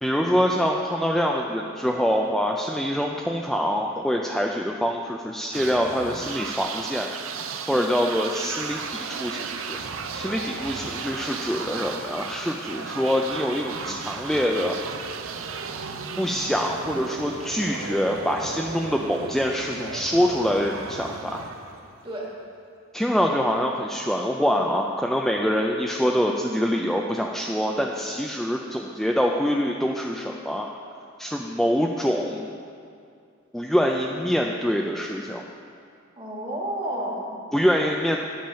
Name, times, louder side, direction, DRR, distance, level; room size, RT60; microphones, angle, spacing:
voice 1, 0.0-7.1 7.7-9.8 10.1-14.8 16.2-21.4 22.9-30.7 31.2-32.5 33.5-35.4 37.5-38.2, equal, ahead, 0 dB, 0.3 m, -25 dB
sound 1, 5.5-22.3, right 5 dB, 85° right, 0.6 m, -35 dB
voice 2, 7.6-8.0 22.0-22.3 27.6-27.8 36.2-37.4, right 1 dB, 25° right, -3 dB, 1.6 m, -32 dB
10.5 x 7.1 x 5.6 m, 2.3 s
head